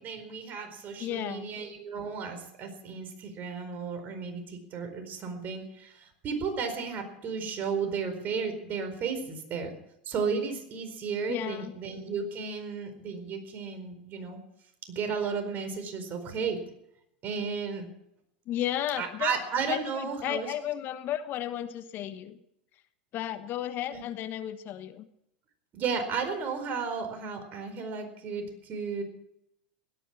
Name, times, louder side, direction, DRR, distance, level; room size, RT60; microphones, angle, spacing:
voice 1, 0.0-9.7 10.0-14.4 14.8-16.6 17.2-17.9 19.0-20.5 23.9-24.0 25.7-29.0, right 5 dB, 40° right, 7 dB, 4.5 m, -34 dB
voice 2, 1.0-1.5 11.3-11.7 18.5-19.4 19.7-22.4 23.1-25.1, left 11 dB, 45° left, 11 dB, 1.3 m, -33 dB
17.0 x 12.5 x 6.0 m, 0.80 s
hypercardioid pair, 95°, 5 cm